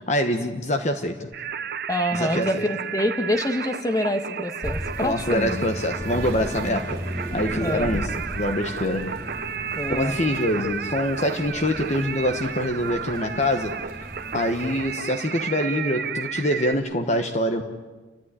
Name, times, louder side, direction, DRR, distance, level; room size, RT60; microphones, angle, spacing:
voice 1, 0.1-1.3 2.1-2.7 5.0-9.2 9.9-13.9 14.3-17.6, left 1 dB, 40° left, 6 dB, 1.2 m, -25 dB
Singing, 1.3-16.7, right 7 dB, 55° right, 0.8 m, -33 dB
voice 2, 1.9-5.6 7.6-8.0 9.7-10.2 10.6-10.7, left 1 dB, 20° left, 6 dB, 1.5 m, -26 dB
sound 1, 4.6-14.9, equal, 15° right, 3.9 m, -36 dB
30.0 x 13.5 x 9.9 m, 1.3 s
head